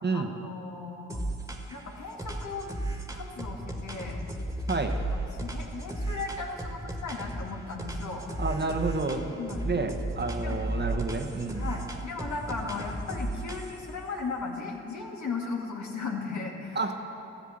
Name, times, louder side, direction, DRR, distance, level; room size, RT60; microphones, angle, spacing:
voice 1, 0.1-1.2 1.7-2.7 3.1-4.2 5.1-8.2 9.4-9.6 10.4-10.6 11.5-16.8, left 4 dB, 60° left, 0 dB, 1.9 m, -36 dB
sound 1, 1.1-1.8 2.2-7.5 7.8-9.2 9.5-13.9, right 1 dB, 10° right, 1.8 m, -34 dB
voice 2, 8.4-9.4 9.6-11.7 16.7-16.9, right 3 dB, 35° right, 4 dB, 1.2 m, -30 dB
14.0 x 7.2 x 7.4 m, 2.8 s
supercardioid pair, 50°, 32 cm